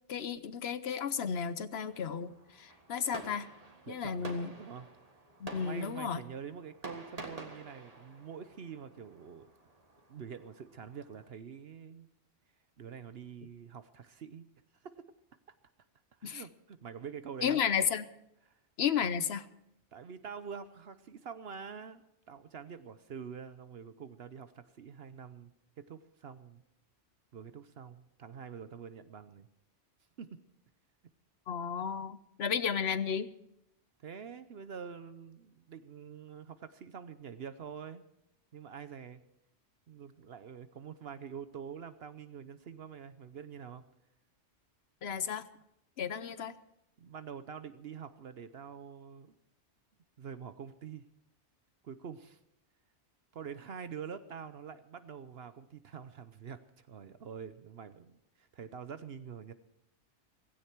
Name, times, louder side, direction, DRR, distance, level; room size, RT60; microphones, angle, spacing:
voice 1, 0.1-3.5 3.9-4.5 5.4-6.2 16.2-16.4 17.4-18.0 18.8-19.5 31.5-33.3 45.0-45.4 46.0-46.6, left 7 dB, 65° left, 1.1 m, -33 dB
Fireworks, 1.9-11.3, right 2 dB, 30° right, 1.8 m, -50 dB
voice 2, 3.9-4.9 5.6-9.5 10.1-12.1 12.8-14.5 14.8-15.0 15.5-15.6 16.2-17.6 18.5-18.6 19.9-25.5 25.9-26.6 27.3-29.5 30.2-30.4 34.0-38.0 38.5-39.2 39.9-43.8 47.0-49.4 50.2-51.1 51.8-52.4 53.3-59.5, right 7 dB, 60° right, 1.0 m, -46 dB
16.5 x 16.0 x 4.5 m
omnidirectional pair, 1.2 m